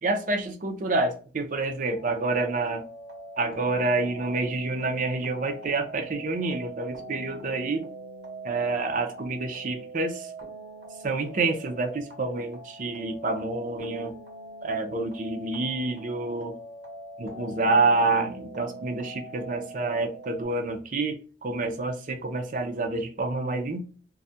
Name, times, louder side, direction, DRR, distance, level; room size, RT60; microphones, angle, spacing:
voice 1, 0.0-2.8 3.4-7.9 8.4-10.3 11.0-14.1 14.6-16.6 17.2-23.8, right 3 dB, 45° right, 0.5 m, -28 dB
sound 1, 1.9-20.4, right 1 dB, 70° right, 0.9 m, -43 dB
2.3 x 2.1 x 2.6 m
head